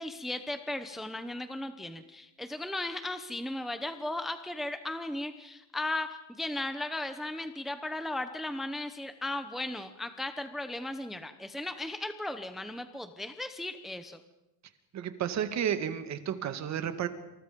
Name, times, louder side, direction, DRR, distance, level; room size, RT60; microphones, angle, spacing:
voice 1, 0.0-14.2, left 2 dB, ahead, 8 dB, 0.8 m, -36 dB
voice 2, 14.9-17.1, right 9 dB, 45° right, 9 dB, 2.1 m, -32 dB
28.5 x 27.5 x 5.3 m, 0.97 s
cardioid pair, 175°, 40 cm